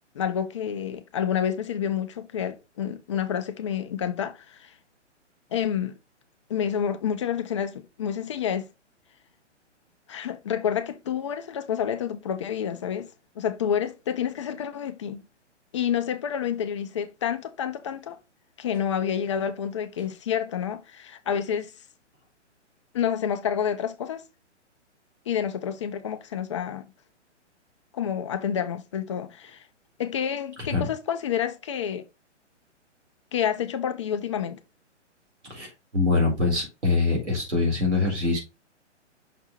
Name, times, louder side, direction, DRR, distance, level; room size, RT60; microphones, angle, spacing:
voice 1, 0.1-4.7 5.5-6.0 6.5-8.7 10.1-13.1 13.4-15.2 15.7-18.2 18.6-21.7 22.9-24.2 25.3-26.9 27.9-29.7 30.0-32.0 33.3-34.6, left 8 dB, 25° left, 0.5 m, -29 dB
voice 2, 35.5-38.4, left 3 dB, 70° right, 4.0 m, -24 dB
6.1 x 4.4 x 4.0 m
figure-of-eight pair, 125°, 36 cm